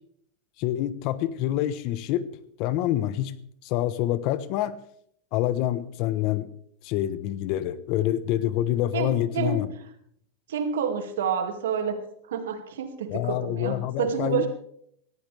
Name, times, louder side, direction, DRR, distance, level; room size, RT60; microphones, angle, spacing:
voice 1, 0.6-2.2 2.6-3.3 3.6-4.7 5.3-6.5 6.8-9.7 13.1-14.4, left 13 dB, 50° left, 15 dB, 1.1 m, -26 dB
voice 2, 8.9-9.6 10.5-12.0 12.2-14.5, right 7 dB, 90° right, 6 dB, 2.4 m, -28 dB
18.5 x 15.0 x 3.5 m, 0.68 s
supercardioid pair, 135°, 0 cm